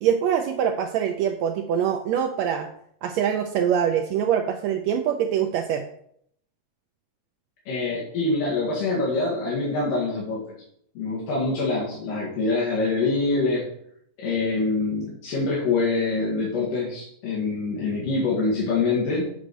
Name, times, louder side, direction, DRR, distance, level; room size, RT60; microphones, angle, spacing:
voice 1, 0.0-2.7 3.0-5.8, right 8 dB, 85° right, 6 dB, 1.5 m, -24 dB
voice 2, 7.7-10.4 11.0-13.6 14.2-19.2, left 3 dB, 80° left, -6 dB, 3.7 m, -25 dB
8.4 x 4.9 x 6.2 m, 0.69 s
omnidirectional pair, 3.7 m